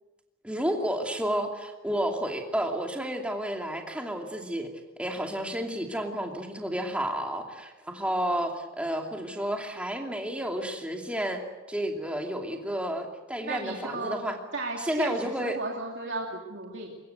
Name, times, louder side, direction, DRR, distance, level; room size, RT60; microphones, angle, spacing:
voice 1, 0.4-4.7 5.0-11.4 11.7-14.4 14.8-15.6, right 1 dB, 5° right, 2 dB, 2.7 m, -31 dB
voice 2, 13.4-14.2 14.5-17.0, right 2 dB, 60° right, -1 dB, 2.6 m, -35 dB
24.0 x 21.5 x 8.0 m, 1.1 s
head